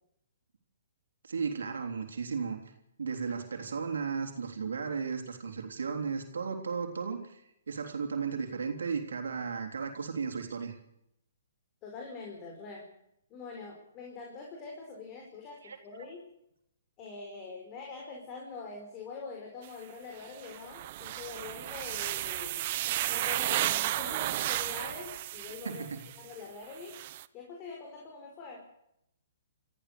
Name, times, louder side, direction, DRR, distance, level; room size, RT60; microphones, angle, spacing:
voice 1, 1.2-2.6 3.0-10.7 15.6-15.8 25.6-26.0, right 5 dB, 80° right, 4 dB, 3.5 m, -35 dB
voice 2, 11.8-12.9 13.3-16.2 17.0-22.7 23.1-25.8 26.2-26.9 27.3-28.7, left 4 dB, 30° left, 0 dB, 5.2 m, -44 dB
sound 1, 19.6-19.7 20.2-26.3 26.7-27.2, right 15 dB, 45° right, 0.8 m, -33 dB
26.5 x 14.5 x 6.9 m, 0.79 s
hypercardioid pair, 145°, 0 cm